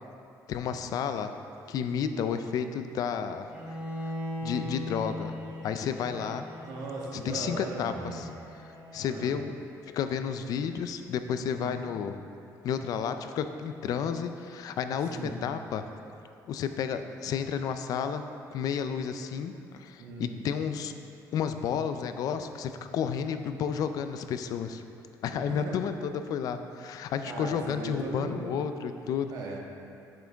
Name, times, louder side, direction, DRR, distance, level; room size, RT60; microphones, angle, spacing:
voice 1, 0.5-1.3 1.7-4.1 4.4-5.3 5.6-6.4 7.1-8.3 8.9-9.5 9.9-12.1 12.6-15.9 16.5-18.2 18.5-20.9 21.3-24.8 25.2-29.3, left 7 dB, 60° left, 9 dB, 0.4 m, -31 dB
Bowed string instrument, 3.5-9.5, left 1 dB, 20° right, 1.7 m, -40 dB
voice 2, 6.7-8.3 9.1-9.3 11.5-11.8 15.1-15.4 20.0-20.6 25.5-25.8 27.2-28.4 29.3-29.6, right 2 dB, 65° right, -2 dB, 1.4 m, -38 dB
7.6 x 7.3 x 3.5 m, 2.5 s
cardioid pair, 145°, 7 cm